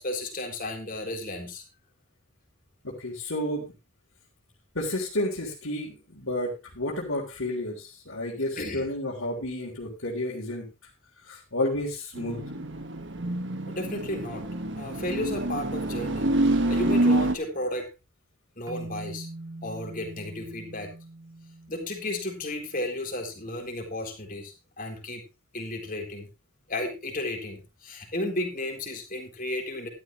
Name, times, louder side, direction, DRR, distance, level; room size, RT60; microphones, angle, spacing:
voice 1, 0.0-1.6 8.4-8.9 13.7-14.5 14.8-16.3 16.7-17.9 18.6-19.3 19.6-20.9 21.7-25.2 25.5-26.3 26.7-29.9, left 1 dB, 40° left, 3 dB, 3.8 m, -33 dB
voice 2, 2.8-3.6 4.8-10.7 11.2-12.4, left 1 dB, 70° left, -4 dB, 3.6 m, -31 dB
sound 1, 12.1-17.3, right 1 dB, 55° right, 1.5 m, -27 dB
sound 2, 18.7-23.0, right 2 dB, 15° right, 1.7 m, -43 dB
13.5 x 12.5 x 3.1 m, 0.27 s
head